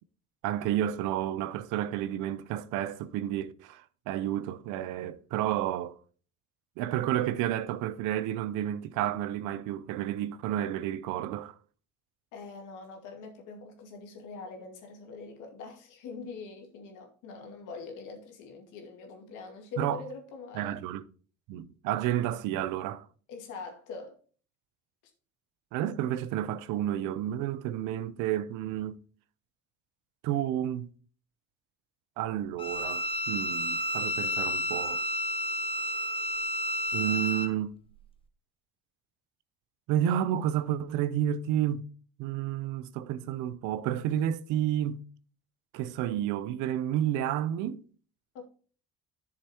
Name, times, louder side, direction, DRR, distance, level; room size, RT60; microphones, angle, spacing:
voice 1, 0.4-6.0 6.8-11.5 19.8-20.0 20.5-21.0 21.5-23.1 25.7-29.0 30.2-30.9 32.2-35.0 36.9-37.7 39.9-41.9 42.2-45.1 45.7-47.8, right 11 dB, 85° right, 0.7 m, -31 dB
voice 2, 12.3-20.7 23.3-24.2 48.3-48.5, left 4 dB, 80° left, 2.3 m, -43 dB
Bowed string instrument, 32.6-37.5, equal, 15° left, 1.2 m, -31 dB
11.0 x 6.7 x 2.9 m
supercardioid pair, 80°, 30 cm